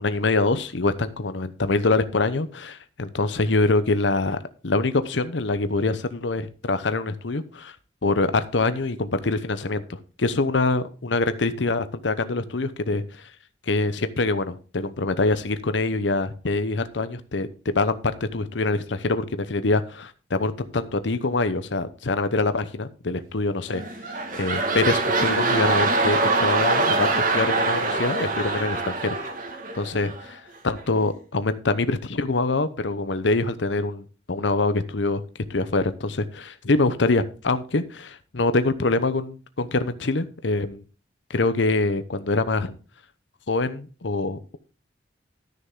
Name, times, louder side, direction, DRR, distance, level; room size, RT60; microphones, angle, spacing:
voice 1, 0.0-4.4 4.6-7.8 8.0-13.3 13.6-29.2 29.7-35.2 35.5-40.8 41.3-42.8 43.5-44.6, left 3 dB, 85° left, 12 dB, 0.9 m, -25 dB
sound 1, 23.7-30.3 30.8-30.9, right 3 dB, 50° right, 1.8 m, -24 dB
13.0 x 6.7 x 3.7 m, 0.37 s
head